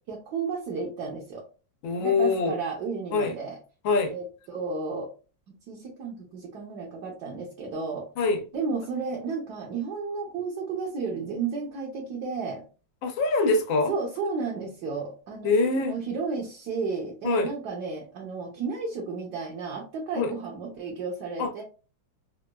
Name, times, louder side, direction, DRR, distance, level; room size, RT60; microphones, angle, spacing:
voice 1, 0.1-1.4 2.0-3.6 4.0-5.1 5.5-8.1 8.5-12.6 13.9-21.6, right 4 dB, 65° right, 1.3 m, -33 dB
voice 2, 1.8-2.6 3.1-3.3 3.8-4.1 8.2-8.4 13.0-13.9 15.4-16.0 17.2-17.5 20.2-20.3 21.4-21.5, left 3 dB, 90° left, 1.5 m, -24 dB
3.9 x 2.2 x 2.2 m
omnidirectional pair, 2.0 m